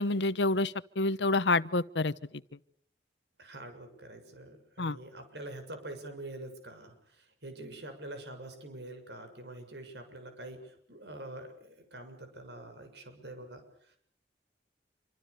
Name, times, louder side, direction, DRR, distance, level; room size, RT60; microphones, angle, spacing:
voice 1, 0.0-2.1 4.8-5.0, left 2 dB, 85° left, 1.0 m, -28 dB
voice 2, 3.4-14.0, right 1 dB, 75° right, 6.8 m, -45 dB
28.0 x 25.5 x 6.8 m
head